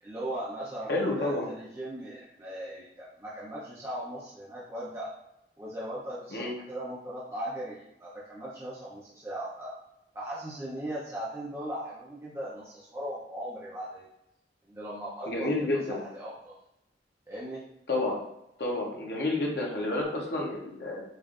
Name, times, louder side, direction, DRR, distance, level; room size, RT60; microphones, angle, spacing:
voice 1, 0.0-5.1 5.6-9.7 10.1-14.0 14.7-15.5 15.9-16.5 17.3-17.6, right 1 dB, 15° right, -7 dB, 0.6 m, -38 dB
voice 2, 0.9-1.5 6.3-6.5 15.3-16.0 17.9-18.2 18.6-21.0, left 2 dB, 65° left, -2 dB, 0.8 m, -30 dB
5.3 x 2.5 x 2.4 m, 0.83 s
head